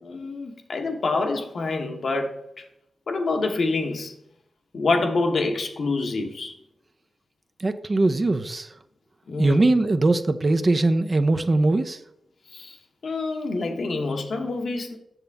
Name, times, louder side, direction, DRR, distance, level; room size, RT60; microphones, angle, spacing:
voice 1, 0.0-2.6 3.1-4.1 4.7-6.5 9.3-9.7 12.5-12.8 13.0-15.0, left 3 dB, 70° left, 1.1 m, -26 dB
voice 2, 7.6-8.7 9.4-12.0, right 2 dB, 40° right, 0.6 m, -21 dB
7.2 x 6.7 x 3.5 m
cardioid pair, 60°, 0 cm